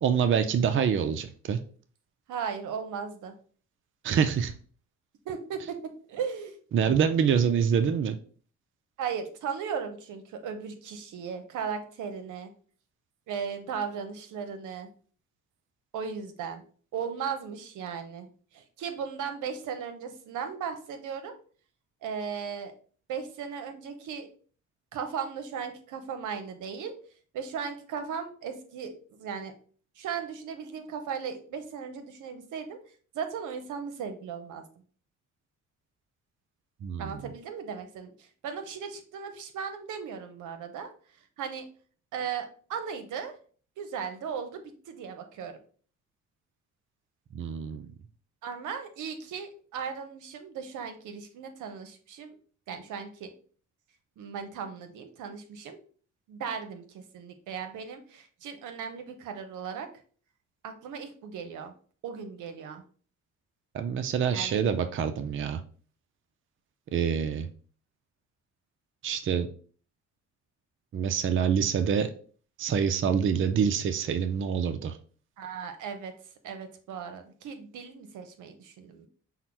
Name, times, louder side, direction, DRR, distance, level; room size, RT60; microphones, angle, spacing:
voice 1, 0.0-1.6 4.0-4.5 6.7-8.2 36.8-37.2 47.3-47.9 63.7-65.6 66.9-67.5 69.0-69.5 70.9-72.1 72.6-75.0, right 7 dB, 40° right, 9 dB, 0.5 m, -26 dB
voice 2, 2.3-3.3 5.2-6.6 7.1-7.3 9.0-12.5 13.3-14.9 15.9-16.6 16.9-18.3 18.5-21.3 22.0-22.7 23.1-24.3 24.9-27.0 27.3-29.5 30.0-32.8 33.1-34.6 37.0-40.9 41.2-41.7 42.1-43.4 43.8-45.6 48.4-52.4 52.7-53.3 54.2-55.8 56.3-59.9 60.6-61.7 62.0-62.8 64.3-64.6 75.4-76.1 76.4-79.1, right 6 dB, 80° right, 7 dB, 0.8 m, -37 dB
5.7 x 2.1 x 4.4 m, 0.44 s
cardioid pair, 90°, 30 cm